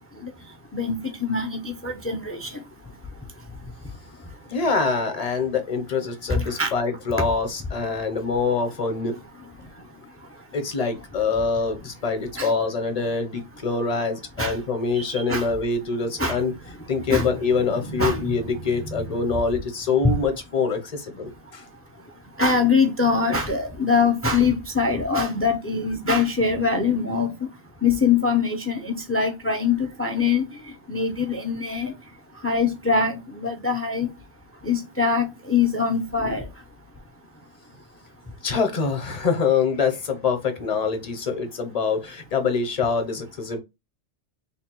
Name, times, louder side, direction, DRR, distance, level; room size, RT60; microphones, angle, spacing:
voice 1, 0.7-2.5 6.3-6.7 12.4-12.5 14.4-14.5 15.0-15.4 16.2-16.4 17.1-17.3 17.6-18.3 18.9-19.0 20.0-20.2 22.4-27.3 27.8-30.4 30.9-31.9 32.4-34.1 34.6-36.4, left 4 dB, 20° left, 0.4 m, -23 dB
voice 2, 4.5-9.2 10.5-16.5 16.9-21.6 38.4-43.6, left 4 dB, 40° left, 0.8 m, -25 dB
3.5 x 2.3 x 4.4 m
omnidirectional pair, 1.1 m